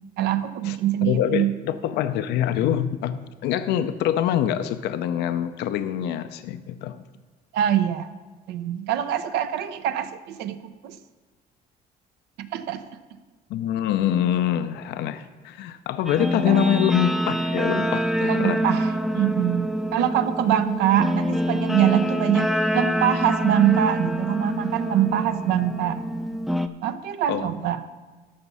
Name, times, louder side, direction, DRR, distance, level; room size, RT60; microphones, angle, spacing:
voice 1, 0.2-1.5 7.5-8.1 8.5-10.6 10.8-11.0 12.5-12.8 16.5-16.7 18.3-18.9 19.1-26.0 26.8-27.8, right 11 dB, 85° right, 10 dB, 0.7 m, -24 dB
voice 2, 1.0-7.0 13.5-18.6 27.3-27.7, left 10 dB, 80° left, 10 dB, 0.6 m, -25 dB
Guitar, 16.1-26.7, equal, ahead, 0.5 m, -26 dB
13.0 x 5.9 x 5.5 m, 1.4 s
cardioid pair, 110°, 17 cm